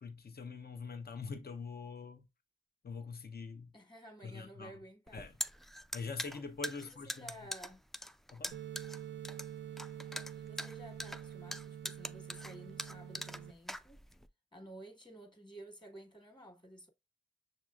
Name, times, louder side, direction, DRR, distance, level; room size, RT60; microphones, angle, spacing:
voice 1, 0.0-2.3 2.8-3.7 4.2-4.7 5.1-5.3 5.9-7.3 8.3-8.5, left 4 dB, 55° left, 0.8 m, -44 dB
voice 2, 3.7-5.3 6.8-7.8 10.4-14.0 14.5-16.9, right 1 dB, 25° left, 1.6 m, -53 dB
sound 1, 5.1-14.3, equal, ahead, 0.3 m, -43 dB
sound 2, 8.5-13.5, right 10 dB, 65° right, 0.5 m, -47 dB
6.3 x 2.9 x 2.4 m
cardioid pair, 45°, 19 cm